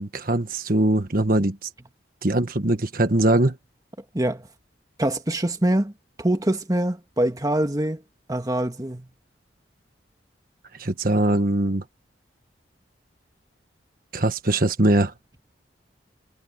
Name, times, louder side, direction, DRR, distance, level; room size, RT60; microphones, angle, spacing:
voice 1, 0.0-1.7 2.2-3.5 10.8-11.8 14.1-15.1, right 1 dB, 50° right, 1.4 m, -21 dB
voice 2, 4.1-4.5 5.0-5.9 6.2-8.0 8.3-9.1, right 1 dB, 20° right, 1.6 m, -24 dB
head